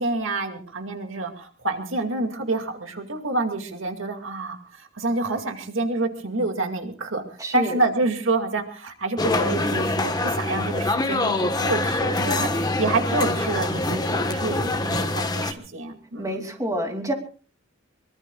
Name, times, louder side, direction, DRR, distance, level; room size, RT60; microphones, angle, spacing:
voice 1, 0.0-16.5, right 2 dB, 70° right, 5 dB, 2.3 m, -28 dB
voice 2, 7.4-7.8 16.2-17.1, equal, 15° right, 3 dB, 2.8 m, -28 dB
sound 1, 9.2-15.5, left 2 dB, 20° left, 1.3 m, -24 dB
23.5 x 23.5 x 2.4 m, 0.38 s
head